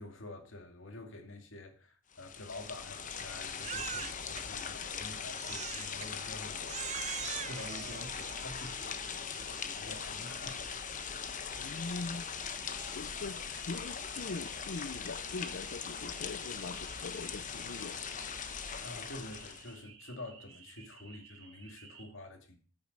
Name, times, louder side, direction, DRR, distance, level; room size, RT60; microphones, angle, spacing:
voice 1, 0.0-7.0 7.4-10.7 18.8-22.6, left 1 dB, 80° left, 2.3 m, -48 dB
sound 1, 2.1-19.8, left 6 dB, 40° left, 1.0 m, -40 dB
Crying sobbing, 3.6-4.4 5.3-6.1 6.7-8.8, right 9 dB, 35° right, 0.6 m, -41 dB
sound 2, 8.6-22.0, right 6 dB, 90° right, 2.5 m, -56 dB
voice 2, 11.6-12.3 12.9-18.0, left 3 dB, 60° left, 0.5 m, -42 dB
14.5 x 7.0 x 5.4 m
head